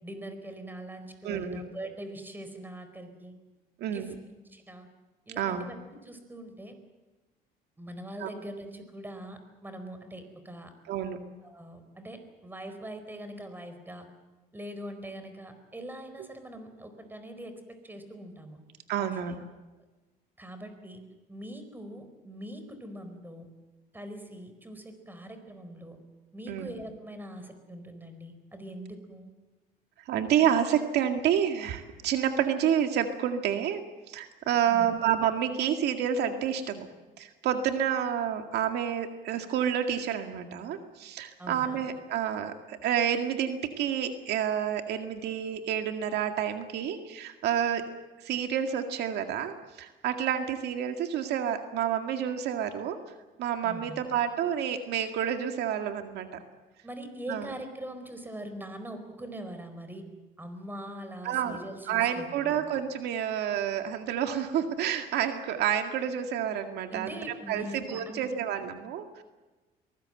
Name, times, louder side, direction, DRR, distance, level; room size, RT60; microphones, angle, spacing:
voice 1, 0.0-3.3 3.9-4.1 4.5-4.9 5.3-6.8 7.8-10.7 11.4-14.1 14.5-18.6 19.0-19.5 20.4-21.0 21.3-23.5 23.9-26.0 26.3-29.3 34.7-34.9 41.4-41.9 53.6-54.1 56.8-60.1 60.4-62.6 66.9-68.2, right 1 dB, 10° right, 8 dB, 4.5 m, -42 dB
voice 2, 1.2-1.6 3.8-4.2 5.4-5.6 8.2-8.3 10.9-11.2 18.9-19.3 26.5-26.7 30.1-33.8 34.1-36.9 37.2-47.9 48.2-53.0 53.4-56.3 57.3-57.5 61.2-61.6 61.9-69.2, right 9 dB, 80° right, 6 dB, 2.1 m, -29 dB
23.5 x 19.5 x 7.8 m, 1.2 s
cardioid pair, 110°, 17 cm